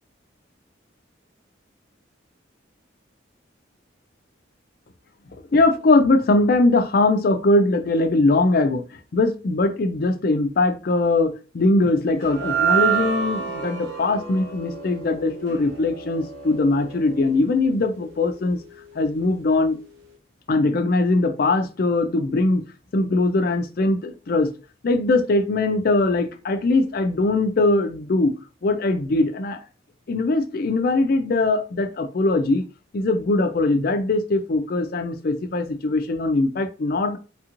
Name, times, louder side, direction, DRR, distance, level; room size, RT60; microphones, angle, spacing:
voice 1, 5.5-8.8 9.1-18.6 19.0-19.8 20.5-22.6 22.9-24.5 24.8-28.3 28.6-29.6 30.1-32.7 32.9-37.2, left 2 dB, 50° left, 0.4 m, -21 dB
sound 1, 12.2-18.6, right 7 dB, 85° right, 0.9 m, -28 dB
3.3 x 2.4 x 2.9 m
head